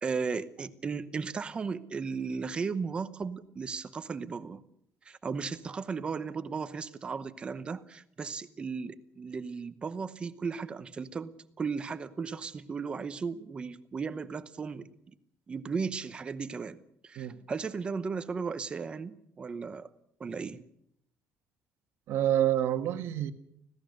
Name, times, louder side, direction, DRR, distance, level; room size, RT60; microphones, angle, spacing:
voice 1, 0.0-4.6 5.0-11.3 11.6-14.9 15.5-16.8 17.0-19.9 20.2-20.6, right 5 dB, 20° right, 12 dB, 0.9 m, -35 dB
voice 2, 22.1-23.3, right 11 dB, 55° right, 9 dB, 1.4 m, -27 dB
25.5 x 17.5 x 6.6 m, 0.73 s
cardioid pair, 180°, 5 cm